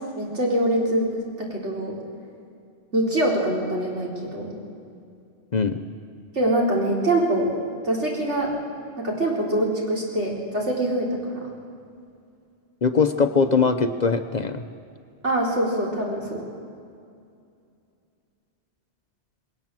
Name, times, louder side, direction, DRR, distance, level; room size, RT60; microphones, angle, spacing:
voice 1, 0.2-2.0 2.9-4.5 6.3-7.5 7.8-8.5 9.0-11.5 15.2-16.4, right 1 dB, 80° right, -2 dB, 4.1 m, -24 dB
voice 2, 12.8-14.6, left 5 dB, 45° left, 8 dB, 0.8 m, -21 dB
20.0 x 18.5 x 7.5 m, 2.4 s
omnidirectional pair, 1.2 m